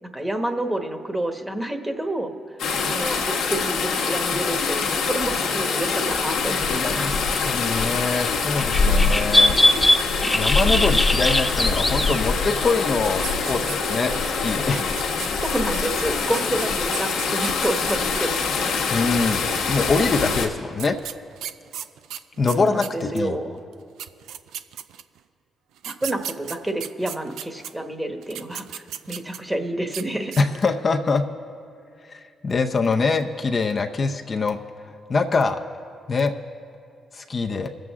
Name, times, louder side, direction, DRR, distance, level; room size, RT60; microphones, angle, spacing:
voice 1, 0.0-2.6 2.9-3.2 3.5-4.8 5.1-7.2 15.4-18.8 22.5-23.6 25.8-30.3, right 1 dB, 15° right, 6 dB, 1.4 m, -29 dB
sound 1, 2.6-20.5, left 4 dB, 80° left, 1.3 m, -24 dB
sound 2, 6.4-6.8 7.1-7.2 7.5-8.3 8.6-13.0 13.3-13.5, left 1 dB, 15° left, 0.7 m, -21 dB
voice 2, 6.7-9.6 10.3-14.9 18.9-21.0 22.4-23.3 30.4-31.2 32.1-34.6 35.1-35.6 36.1-36.3 37.1-37.7, left 4 dB, 45° left, 4 dB, 0.7 m, -24 dB
sound 3, 13.1-14.2 14.5-18.2 19.2-20.1 20.8-23.3 23.7-23.8 24.0-25.2 25.8-27.7 28.2-29.5 29.9-30.0 30.3-30.7, right 10 dB, 80° right, 0.4 m, -35 dB
22.0 x 7.7 x 3.7 m, 2.4 s
supercardioid pair, 50°, 0 cm